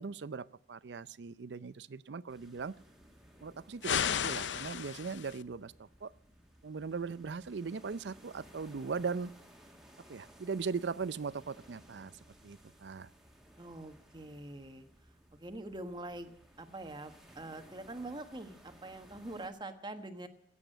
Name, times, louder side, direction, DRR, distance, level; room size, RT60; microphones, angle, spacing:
voice 1, 0.0-2.7 3.4-5.7 6.0-6.1 6.6-9.3 10.1-12.1 12.4-13.1, right 5 dB, 70° right, 19 dB, 0.5 m, -39 dB
sound 1, 2.3-19.5, equal, 5° right, 2.0 m, -59 dB
sound 2, 3.8-5.4, left 8 dB, 85° left, 0.6 m, -33 dB
voice 2, 13.6-14.8 15.3-20.3, right 2 dB, 25° right, 8 dB, 1.3 m, -44 dB
17.0 x 8.4 x 9.0 m, 0.73 s
head